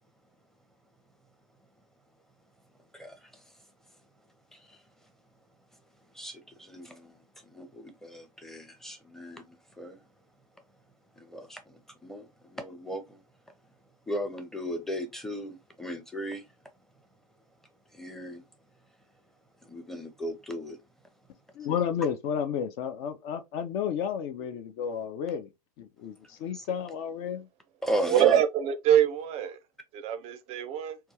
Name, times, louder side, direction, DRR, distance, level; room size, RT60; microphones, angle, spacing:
voice 1, 6.2-7.2 7.5-10.0 11.2-13.2 14.1-16.4 17.9-18.4 19.7-20.8 26.5-26.6 27.8-28.4, equal, ahead, 0.7 m, -36 dB
voice 2, 21.6-25.5 25.8-27.5, left 8 dB, 45° left, 0.5 m, -32 dB
voice 3, 28.1-29.6 29.9-31.0, right 10 dB, 35° right, 0.5 m, -24 dB
4.4 x 2.4 x 2.8 m
figure-of-eight pair, 90°, 19 cm